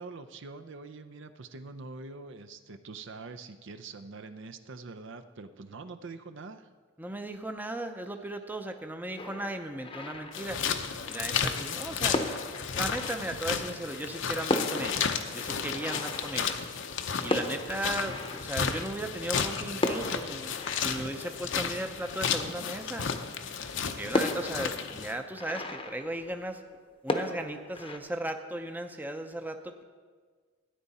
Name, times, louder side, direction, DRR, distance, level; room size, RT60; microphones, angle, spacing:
voice 1, 0.0-6.7, right 3 dB, 65° right, 9 dB, 0.6 m, -44 dB
voice 2, 7.0-12.4 12.7-15.1 15.3-16.6 17.2-23.1 23.9-26.6 27.0-29.8, right 1 dB, 10° right, 6 dB, 0.6 m, -36 dB
sound 1, 9.2-11.0 11.8-11.9 12.1-13.8 14.2-14.3 14.5-19.2 19.8-22.4 22.9-23.0 23.4-23.5 24.1-26.8 27.1-28.0, left 2 dB, 25° left, 0.8 m, -36 dB
sound 2, 10.3-25.2, left 6 dB, 65° left, 0.7 m, -33 dB
13.5 x 9.7 x 4.2 m, 1.5 s
head